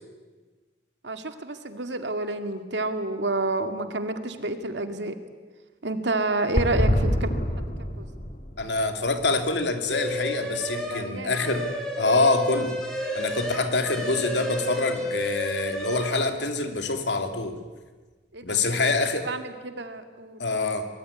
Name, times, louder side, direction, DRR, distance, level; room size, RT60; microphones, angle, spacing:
voice 1, 1.0-5.2 5.8-7.4 7.8-8.1 10.7-11.5 18.3-18.8 19.2-20.4, right 2 dB, 85° right, 7 dB, 2.2 m, -29 dB
sound 1, 6.5-10.3 10.6-10.7 10.9-11.0, equal, 45° left, 2.8 m, -27 dB
voice 2, 8.6-11.7 12.0-12.7 13.1-17.6 18.4-19.3 20.4-20.9, left 3 dB, 85° left, 7 dB, 2.7 m, -25 dB
sound 2, 9.9-11.0 11.3-16.1, left 1 dB, 5° left, 4.9 m, -31 dB
24.0 x 21.0 x 9.8 m, 1.3 s
head